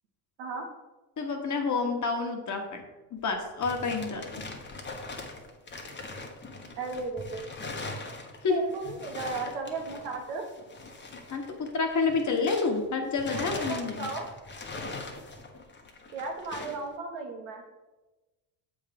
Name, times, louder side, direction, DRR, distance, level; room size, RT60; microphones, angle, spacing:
voice 1, 1.2-2.8 3.1-4.2 8.4-8.6 11.3-14.1, left 4 dB, 40° left, 3 dB, 1.4 m, -29 dB
sound 1, 3.2-12.8 13.1-16.9, left 2 dB, 25° left, 1.2 m, -41 dB
voice 2, 6.8-7.6 8.4-10.5 13.3-14.2 16.1-17.6, right 3 dB, 85° right, 2 dB, 1.4 m, -35 dB
7.0 x 3.7 x 5.2 m, 1.1 s
supercardioid pair, 75°, 44 cm